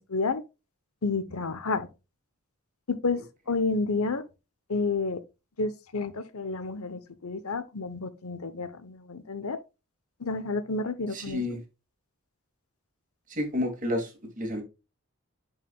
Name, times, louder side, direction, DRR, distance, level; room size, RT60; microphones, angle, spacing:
voice 1, 0.1-0.4 1.0-1.9 2.9-3.2 3.5-4.2 4.7-5.2 5.6-9.6 10.2-11.4, left 3 dB, 85° left, 0.9 m, -30 dB
voice 2, 11.1-11.6 13.3-14.6, left 1 dB, 35° right, 2.3 m, -30 dB
11.0 x 4.9 x 2.3 m
head